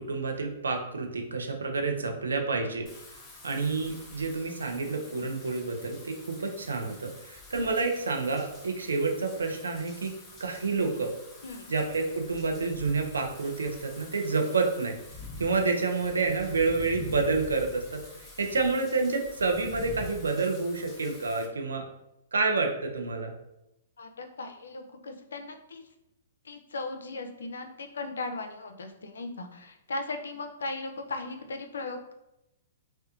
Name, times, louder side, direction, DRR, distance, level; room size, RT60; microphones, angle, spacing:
voice 1, 0.0-2.9 3.4-10.1 10.4-11.1 11.7-15.0 15.4-18.0 18.4-21.8 22.3-23.4, right 3 dB, 85° right, 3 dB, 0.4 m, -29 dB
Wind / Rain, 2.9-21.5, left 2 dB, 15° left, 0.6 m, -47 dB
voice 2, 11.4-11.7 24.0-25.8 26.4-32.1, left 3 dB, 80° left, 6 dB, 0.4 m, -37 dB
2.9 x 2.1 x 2.4 m, 0.85 s
hypercardioid pair, 120°, 0 cm